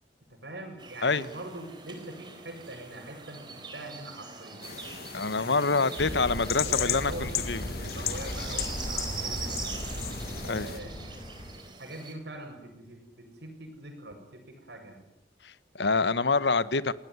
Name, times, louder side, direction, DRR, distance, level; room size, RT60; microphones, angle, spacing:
voice 1, 0.3-4.7 5.3-9.6 10.4-11.2 11.8-15.1, right 1 dB, 70° right, 4 dB, 7.7 m, -43 dB
sound 1, 0.8-12.1, right 5 dB, 25° right, 4.2 m, -43 dB
sound 2, 4.6-10.8, left 9 dB, 55° left, 1.7 m, -36 dB
voice 2, 5.1-7.6 10.5-10.7 15.4-16.9, left 4 dB, 80° left, 17 dB, 1.1 m, -26 dB
sound 3, 6.0-11.6, equal, 25° left, 5.0 m, -37 dB
28.5 x 19.0 x 9.6 m, 0.78 s
head